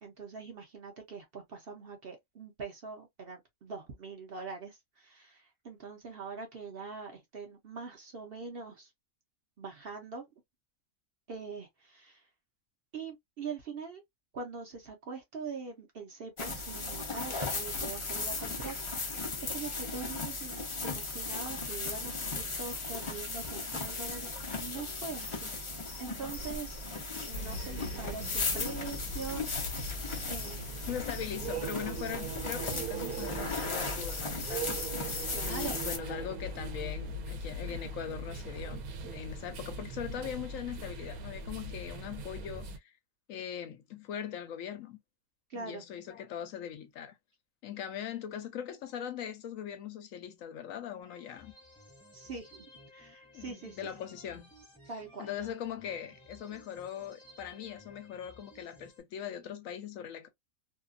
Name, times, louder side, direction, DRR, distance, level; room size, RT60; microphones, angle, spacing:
voice 1, 0.0-8.9 9.6-10.2 11.3-12.2 12.9-14.0 14.3-25.5 26.0-26.8 27.2-30.9 35.3-35.8 45.5-45.8 52.1-52.5 52.9-53.9 54.9-55.3, right 5 dB, 50° right, 0.8 m, -43 dB
sound 1, 16.4-36.0, left 3 dB, 45° left, 0.4 m, -37 dB
sound 2, 27.3-42.8, right 2 dB, 85° right, 1.1 m, -40 dB
voice 2, 30.9-34.8 35.5-42.9 43.3-45.0 45.5-47.2 47.6-51.5 53.3-54.5 55.2-60.3, left 9 dB, 75° left, 1.0 m, -41 dB
sound 3, 51.0-59.0, left 1 dB, 5° left, 0.7 m, -57 dB
2.7 x 2.4 x 2.4 m
omnidirectional pair, 1.5 m